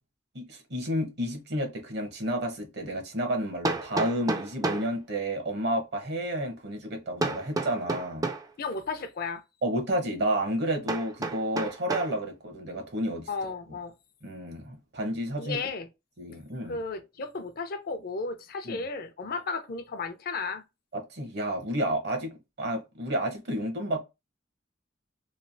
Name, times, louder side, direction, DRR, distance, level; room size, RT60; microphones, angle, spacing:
voice 1, 0.3-8.3 9.6-13.3 14.2-15.7 16.2-16.8 18.6-18.8 20.9-22.3 22.6-24.0, right 1 dB, 60° right, 1.0 m, -31 dB
Hammer, 3.6-4.9 7.2-8.5 10.9-12.2, right 2 dB, 20° right, 0.4 m, -31 dB
voice 2, 8.6-9.4 13.3-13.9 15.4-15.9 16.7-20.6, left 4 dB, 55° left, 0.5 m, -34 dB
3.2 x 2.3 x 2.6 m
head